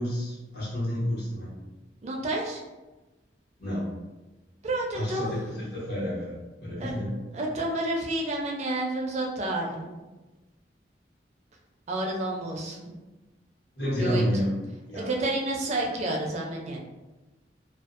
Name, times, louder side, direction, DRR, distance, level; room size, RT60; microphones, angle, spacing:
voice 1, 0.0-1.5 3.6-3.9 4.9-7.1 13.8-14.5 14.9-15.1, equal, 70° left, -8 dB, 1.2 m, -30 dB
voice 2, 2.0-2.6 4.6-5.3 6.8-7.0 7.3-9.9 11.9-12.9 14.0-14.2 14.9-16.8, right 2 dB, 40° right, -1 dB, 0.4 m, -30 dB
2.5 x 2.2 x 2.4 m, 1.1 s
head